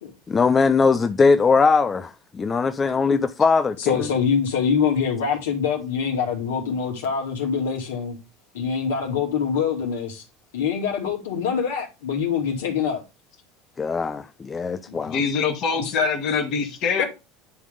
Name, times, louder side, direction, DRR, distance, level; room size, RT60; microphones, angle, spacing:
voice 1, 0.3-4.1 13.8-15.2, left 4 dB, 25° left, 0.5 m, -20 dB
voice 2, 3.8-8.2 8.5-10.2 10.5-13.0 14.9-15.0 15.8-15.9 17.0-17.1, left 6 dB, 80° left, 2.6 m, -24 dB
voice 3, 15.0-17.0, left 5 dB, 55° left, 2.1 m, -23 dB
10.5 x 3.6 x 3.9 m
hypercardioid pair, 80°, 0 cm